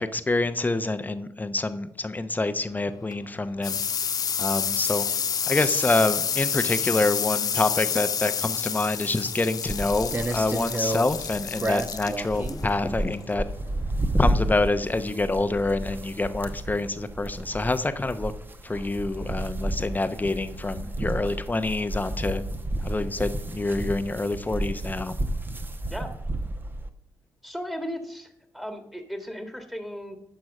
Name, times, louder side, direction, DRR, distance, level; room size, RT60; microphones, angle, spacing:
voice 1, 0.0-3.8 4.4-5.1 5.5-13.4 14.2-18.3 18.6-22.4 22.8-25.1, left 2 dB, 20° left, 11 dB, 0.8 m, -27 dB
sound 1, 2.9-14.2, left 7 dB, 55° left, 0.5 m, -29 dB
sound 2, 9.7-26.9, right 1 dB, 25° right, 1.0 m, -31 dB
voice 2, 27.4-30.2, equal, 5° right, 5 dB, 1.6 m, -36 dB
11.0 x 4.6 x 6.4 m, 0.83 s
supercardioid pair, 60°, 8 cm